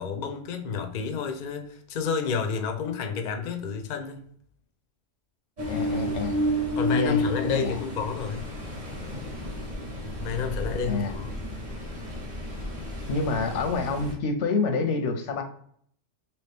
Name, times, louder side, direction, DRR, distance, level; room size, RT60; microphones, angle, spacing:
voice 1, 0.0-4.3 6.1-6.2 6.8-8.5 10.2-11.3, left 6 dB, 55° left, 0.5 m, -30 dB
Ocean, 5.6-14.1, equal, 40° right, 1.0 m, -31 dB
voice 2, 5.7-6.4 6.9-7.8 10.8-11.2 13.1-15.4, left 4 dB, 90° left, 1.0 m, -27 dB
3.0 x 2.9 x 3.3 m
omnidirectional pair, 1.2 m